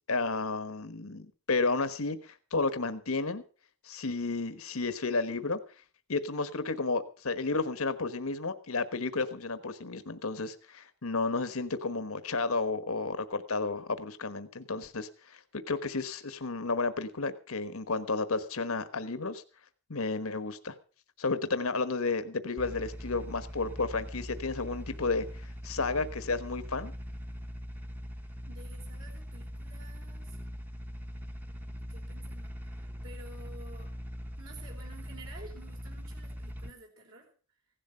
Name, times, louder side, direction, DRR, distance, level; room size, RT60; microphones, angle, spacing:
voice 1, 0.1-3.4 3.8-5.6 6.1-15.4 15.7-19.4 19.9-20.7 21.2-26.9, left 3 dB, 90° left, 11 dB, 1.3 m, -32 dB
sound 1, 22.6-36.7, equal, 10° right, 0.8 m, -41 dB
voice 2, 28.5-30.4 31.9-33.9 34.4-37.3, right 2 dB, 65° right, 0 dB, 4.5 m, -52 dB
16.5 x 11.5 x 5.6 m, 0.39 s
head